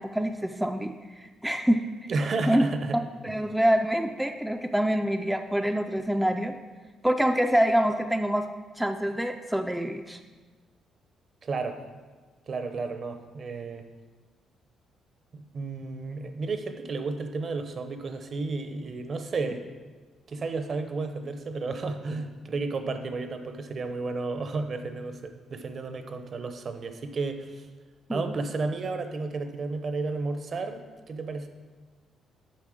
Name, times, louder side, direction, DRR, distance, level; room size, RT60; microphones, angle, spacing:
voice 1, 0.0-2.1 2.5-2.6 3.2-6.5 7.0-8.5 8.8-10.2 28.1-28.3, equal, 5° right, 5 dB, 0.4 m, -26 dB
voice 2, 2.1-3.0 11.4-11.8 12.5-13.9 15.3-19.6 20.3-27.6 28.1-31.5, right 3 dB, 50° right, 8 dB, 0.8 m, -32 dB
7.5 x 5.3 x 5.0 m, 1.4 s
cardioid pair, 90°, 0 cm